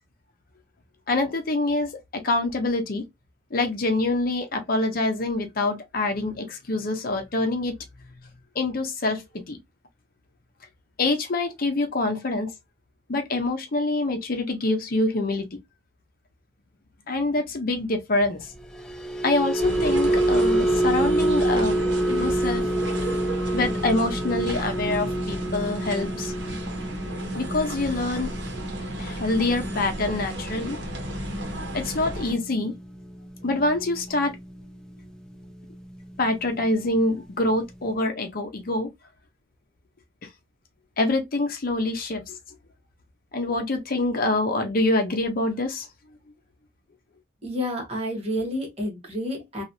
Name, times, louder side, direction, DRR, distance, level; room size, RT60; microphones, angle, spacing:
voice 1, 1.1-3.0 3.5-7.7 8.5-9.6 11.0-12.5 13.1-15.5 17.1-18.4 19.2-21.8 22.1-22.6 23.5-26.3 27.3-28.3 29.0-30.8 31.7-32.7 33.4-34.4 36.2-38.9 41.0-42.4 43.3-45.9, left 2 dB, 50° left, 0.7 m, -25 dB
sound 1, 18.6-35.0 35.3-35.6 36.0-36.2, right 1 dB, 5° left, 0.4 m, -28 dB
sound 2, 19.6-32.3, right 1 dB, 65° right, 1.0 m, -33 dB
voice 2, 47.4-49.6, left 1 dB, 35° right, 1.3 m, -29 dB
3.0 x 2.4 x 2.6 m
head